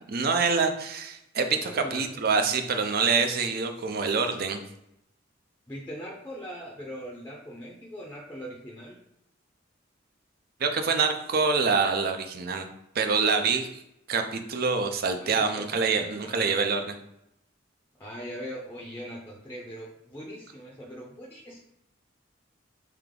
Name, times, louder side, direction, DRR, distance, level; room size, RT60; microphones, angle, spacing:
voice 1, 0.1-4.6 10.6-12.7 12.9-13.7 14.1-16.9, right 5 dB, 50° right, 6 dB, 0.5 m, -26 dB
voice 2, 1.6-2.1 5.7-9.0 15.2-16.6 18.0-21.6, equal, 10° left, -2 dB, 0.5 m, -41 dB
3.4 x 2.9 x 3.6 m, 0.80 s
head